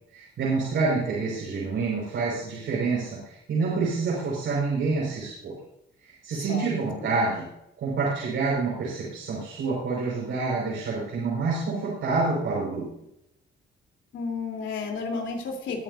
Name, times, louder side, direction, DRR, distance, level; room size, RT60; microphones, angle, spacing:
voice 1, 0.1-5.6 6.0-7.5 7.8-12.9, right 4 dB, 75° right, -5 dB, 5.6 m, -27 dB
voice 2, 6.5-7.1 14.1-15.8, left 4 dB, 70° left, 1 dB, 3.7 m, -32 dB
21.5 x 9.7 x 2.7 m, 0.80 s
cardioid pair, 90°, 20 cm